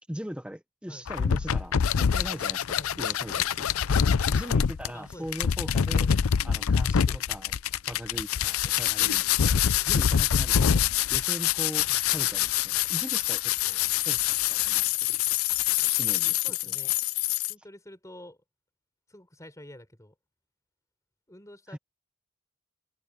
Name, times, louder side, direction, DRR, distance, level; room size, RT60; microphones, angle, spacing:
voice 1, 0.1-3.8 4.3-6.1 6.4-7.6 7.9-10.8 11.1-11.9 12.1-14.8 15.1-15.2 16.0-16.8 21.7-21.8, equal, 5° right, 0.7 m, -40 dB
sound 1, 1.1-17.5, left 9 dB, 80° left, 0.5 m, -25 dB
sound 2, 2.8-15.7, left 1 dB, 60° left, 5.5 m, -62 dB
sound 3, 2.8-3.4 4.0-4.3 4.7-5.2 5.5-6.5 8.0-9.2 9.8-10.4 10.9-11.6 11.9-12.6, left 4 dB, 45° left, 4.6 m, -55 dB
voice 2, 4.9-5.3 7.1-7.2 10.5-10.9 11.9-12.0 16.4-16.9 17.5-18.4 19.1-20.1 21.3-21.8, left 1 dB, 15° left, 3.9 m, -47 dB
head